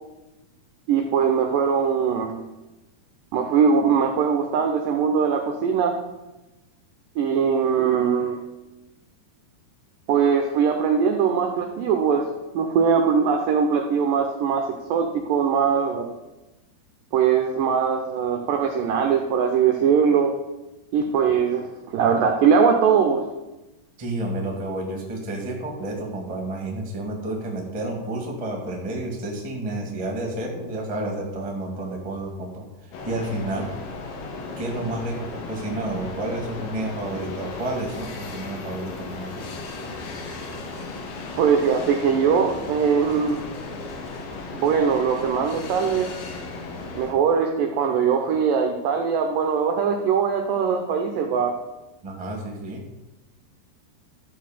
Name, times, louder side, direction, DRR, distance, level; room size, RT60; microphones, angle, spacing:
voice 1, 0.9-2.4 3.3-5.9 7.2-8.4 10.1-12.2 12.5-14.6 14.9-16.1 17.1-20.3 20.9-23.2 41.4-43.5 44.5-46.1 47.0-51.5, right 6 dB, 85° right, 4 dB, 1.9 m, -21 dB
voice 2, 24.0-33.7 34.6-39.5 52.0-52.8, right 1 dB, 20° right, 0 dB, 0.8 m, -30 dB
sound 1, 32.9-47.1, left 3 dB, 85° left, 3.8 m, -36 dB
13.5 x 4.7 x 7.5 m, 1.0 s
omnidirectional pair, 5.1 m